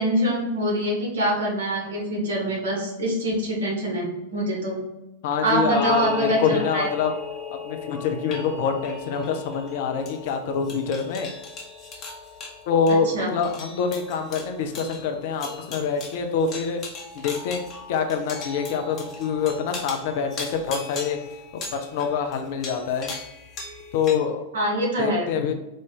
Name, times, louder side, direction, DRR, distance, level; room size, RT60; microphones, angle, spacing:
voice 1, 0.0-4.8 5.4-6.9 13.1-13.3 24.5-25.2, right 1 dB, 65° right, -1 dB, 1.3 m, -24 dB
voice 2, 5.2-7.1 7.5-11.3 12.7-16.8 17.1-17.6 17.9-21.2 21.7-23.1 23.9-24.4 25.0-25.5, left 6 dB, 50° left, 5 dB, 0.5 m, -25 dB
sound 1, 5.7-24.2, left 4 dB, 30° left, 1.0 m, -38 dB
4.2 x 2.6 x 3.7 m, 0.95 s
figure-of-eight pair, 95°, 0 cm